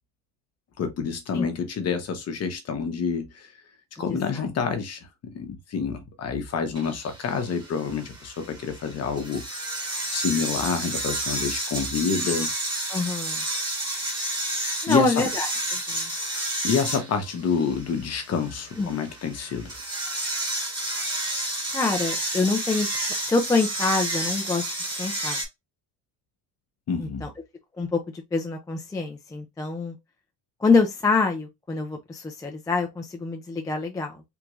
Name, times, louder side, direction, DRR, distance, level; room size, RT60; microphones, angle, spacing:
voice 1, 0.8-3.5 4.0-9.4 10.1-12.5 14.9-15.1 16.6-19.8 26.9-27.2, left 6 dB, 40° left, 0.9 m, -28 dB
sound 1, 6.8-25.5, right 1 dB, 10° right, 1.2 m, -31 dB
voice 2, 12.9-13.4 14.8-16.1 18.8-18.9 21.7-22.9 23.2-25.4 27.0-27.3 27.8-30.0 30.6-34.2, left 3 dB, 10° left, 0.4 m, -26 dB
3.4 x 2.5 x 3.0 m
cardioid pair, 150°, 40 cm